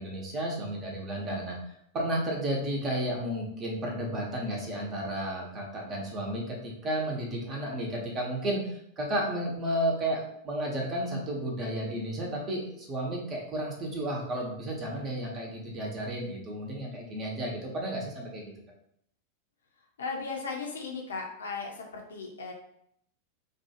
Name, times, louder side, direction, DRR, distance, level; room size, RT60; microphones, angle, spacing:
voice 1, 0.0-1.6 1.9-18.5, right 1 dB, 30° right, -1 dB, 0.9 m, -32 dB
voice 2, 20.0-22.5, left 4 dB, 70° left, 1 dB, 0.6 m, -36 dB
2.6 x 2.3 x 2.8 m, 0.72 s
figure-of-eight pair, 90°, 0 cm